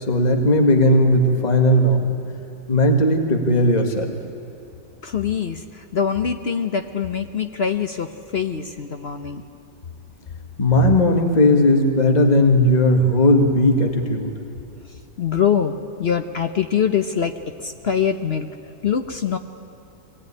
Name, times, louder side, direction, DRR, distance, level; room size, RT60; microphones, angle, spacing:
voice 1, 0.1-2.1 2.7-4.1 10.6-14.3, left 1 dB, 25° left, 3 dB, 1.8 m, -17 dB
voice 2, 5.0-9.4 15.2-15.7 16.0-18.5 18.8-19.4, left 7 dB, 50° left, 7 dB, 0.7 m, -23 dB
23.5 x 17.5 x 9.7 m, 2.8 s
omnidirectional pair, 1.9 m